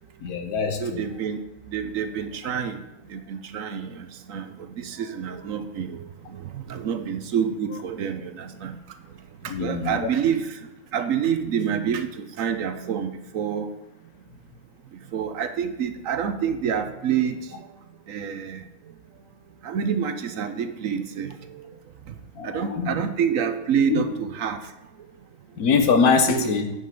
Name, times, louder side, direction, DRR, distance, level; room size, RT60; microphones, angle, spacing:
voice 1, 0.2-1.0 9.5-10.1 22.4-22.9 23.9-24.0 25.6-26.7, left 5 dB, 80° left, 6 dB, 1.6 m, -23 dB
voice 2, 0.8-1.4 1.7-13.7 14.9-17.7 18.1-18.9 19.6-21.8 22.1-22.2 22.4-24.7 26.3-26.5, right 8 dB, 65° right, 10 dB, 1.1 m, -28 dB
9.9 x 5.5 x 6.9 m, 0.95 s
omnidirectional pair, 1.6 m